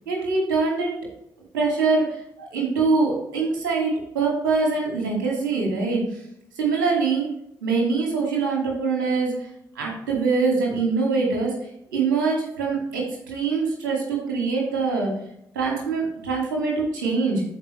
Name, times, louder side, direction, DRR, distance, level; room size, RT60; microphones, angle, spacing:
voice 1, 0.1-0.9 1.5-2.2 2.5-6.2 6.6-7.3 7.6-9.5 9.8-11.5 11.9-15.1 15.5-17.4, right 4 dB, 80° right, -1 dB, 2.2 m, -23 dB
13.5 x 5.0 x 3.2 m, 0.78 s
hypercardioid pair, 40°, 10 cm